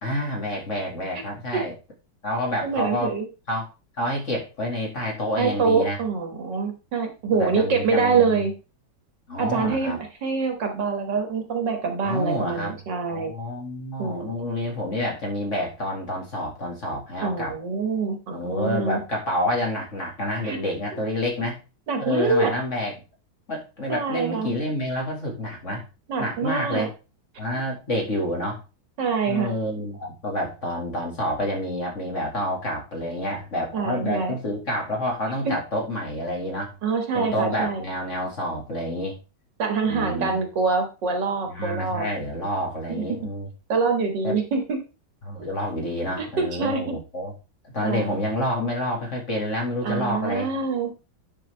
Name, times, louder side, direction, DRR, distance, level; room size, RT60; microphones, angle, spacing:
voice 1, 0.0-1.7 2.2-3.1 3.5-3.7 4.0-6.0 7.2-8.4 9.3-10.0 12.0-12.8 13.1-17.5 18.3-21.6 22.0-23.0 23.5-25.9 26.2-26.9 27.4-28.6 29.3-36.8 37.1-39.2 39.9-40.4 41.5-43.5 44.2-44.3 45.2-47.3 47.7-50.6, left 1 dB, 40° left, -1 dB, 2.3 m, -28 dB
voice 2, 2.6-3.3 5.4-8.5 9.4-13.3 14.0-14.3 17.2-19.0 20.4-20.6 21.9-22.5 23.9-24.5 26.1-26.9 29.0-29.5 33.7-34.3 35.4-35.5 36.8-37.8 39.6-42.1 42.9-43.0 43.7-44.8 46.2-47.0 47.8-48.2 49.8-50.9, right 4 dB, 60° right, 4 dB, 2.1 m, -25 dB
9.8 x 6.1 x 3.3 m, 0.31 s
omnidirectional pair, 2.2 m